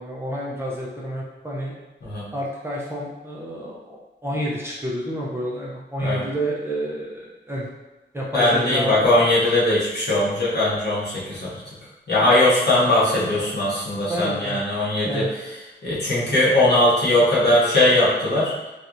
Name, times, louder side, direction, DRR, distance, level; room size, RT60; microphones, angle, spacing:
voice 1, 0.0-1.7 2.3-4.0 4.2-7.7 8.1-9.0 12.8-12.9 13.1-13.2 14.1-14.6 15.0-15.3, equal, 15° right, -5 dB, 0.5 m, -29 dB
voice 2, 8.3-11.6 12.1-15.2 15.8-18.5, left 1 dB, 60° left, -8 dB, 1.2 m, -20 dB
3.1 x 2.8 x 2.5 m, 1.1 s
wide cardioid pair, 125°, 19 cm